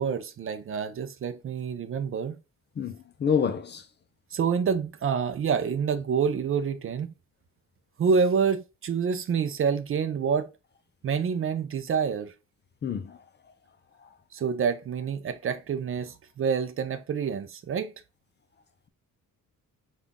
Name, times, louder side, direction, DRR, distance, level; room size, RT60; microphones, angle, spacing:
voice 1, 0.0-2.4 4.3-7.1 8.0-10.5 11.0-12.3 14.3-17.9, right 6 dB, 40° right, 0.4 m, -27 dB
voice 2, 2.8-3.9 12.8-13.2 14.0-14.1, left 7 dB, 30° left, 0.5 m, -28 dB
5.5 x 2.4 x 3.5 m
cardioid pair, 140°, 34 cm